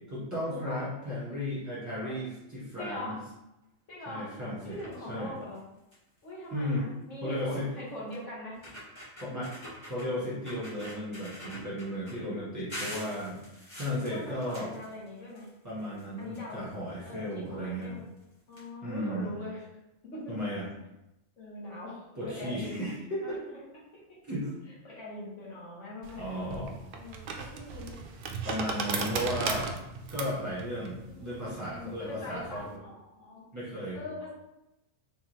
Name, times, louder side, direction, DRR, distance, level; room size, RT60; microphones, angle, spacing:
voice 1, 0.1-3.1 4.1-4.8 5.1-5.3 6.5-6.9 7.2-7.7 9.2-9.5 9.8-13.4 13.8-14.7 15.6-18.0 18.8-19.3 20.3-20.6 22.2-23.4 24.2-24.5 26.1-26.7 28.4-29.7 30.1-32.8 33.5-34.0, equal, 15° right, -9 dB, 1.3 m, -35 dB
voice 2, 2.8-3.2 3.9-4.3 4.6-5.6 6.2-8.6 12.0-13.1 14.1-15.5 16.2-16.6 17.0-18.0 18.5-19.7 20.1-20.3 21.4-22.8 23.2-23.4 23.9-24.0 24.7-26.5 26.9-27.9 28.8-29.4 31.1-33.4 33.9-34.3, left 1 dB, 65° left, -7 dB, 1.6 m, -42 dB
sound 1, 4.7-5.0 5.5-5.6 5.9-6.2 7.4-7.5 8.1-8.2 8.5-10.1 10.4-12.1 12.7-15.5 15.8-16.9 17.8-17.9 18.2-18.3 18.5-18.6, equal, 20° left, 1.6 m, -44 dB
sound 2, 26.0-32.7, right 4 dB, 65° right, 0.5 m, -36 dB
3.5 x 3.5 x 3.1 m, 0.91 s
omnidirectional pair, 1.4 m